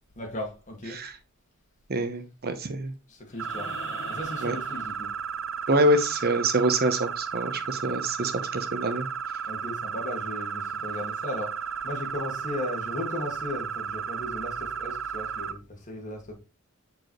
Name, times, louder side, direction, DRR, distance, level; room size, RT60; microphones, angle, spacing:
voice 1, 0.2-1.0 3.1-3.7 4.1-5.1 9.5-16.3, left 1 dB, 35° left, 2.1 m, -36 dB
voice 2, 1.9-2.9 4.4-4.5 5.7-9.1, right 1 dB, 45° right, 0.9 m, -25 dB
sound 1, 3.3-5.6 7.5-7.6, left 3 dB, 55° left, 1.5 m, -44 dB
sound 2, 3.4-15.5, right 7 dB, 65° right, 0.6 m, -34 dB
6.9 x 4.8 x 3.1 m
head